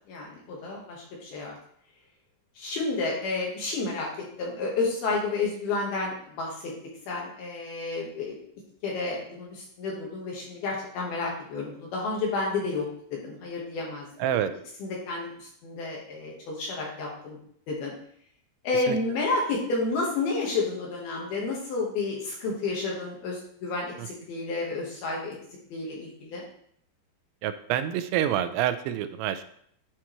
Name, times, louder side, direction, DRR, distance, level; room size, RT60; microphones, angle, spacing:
voice 1, 0.1-1.6 2.6-4.1 4.4-6.7 7.1-8.4 8.8-14.1 14.5-17.4 17.7-17.9 18.6-25.4 25.7-26.4, left 3 dB, 65° left, -2 dB, 2.6 m, -31 dB
voice 2, 14.2-14.5 18.9-19.0 24.0-24.1 27.4-29.4, right 10 dB, 85° right, 10 dB, 2.8 m, -27 dB
11.5 x 4.7 x 3.0 m, 0.66 s
omnidirectional pair, 5.5 m